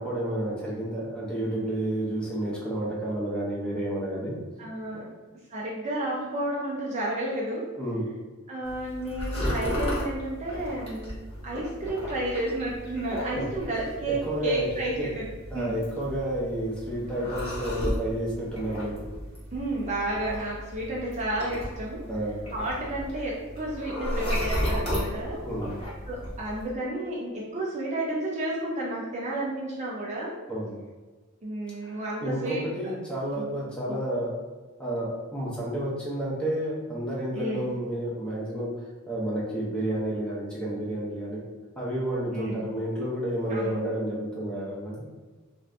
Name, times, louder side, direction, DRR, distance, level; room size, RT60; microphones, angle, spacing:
voice 1, 0.0-4.3 4.9-5.1 7.7-8.1 13.3-13.4 14.3-14.7 15.0-15.1 15.5-18.9 22.1-22.4 25.4-25.8 30.5-30.8 31.8-34.3 34.8-38.7 39.1-41.4 41.8-45.1, right 1 dB, 5° left, -7 dB, 0.8 m, -30 dB
voice 2, 4.6-5.1 5.5-7.7 8.5-11.2 11.4-15.3 15.5-15.8 19.5-22.0 22.5-25.4 26.1-30.4 31.4-32.7 33.4-33.5 33.9-34.0 37.3-37.7 42.3-42.7 43.5-43.8, right 1 dB, 35° right, -5 dB, 0.5 m, -31 dB
sound 1, 8.6-26.7, equal, 30° left, 1.0 m, -34 dB
2.6 x 2.5 x 3.2 m, 1.3 s
head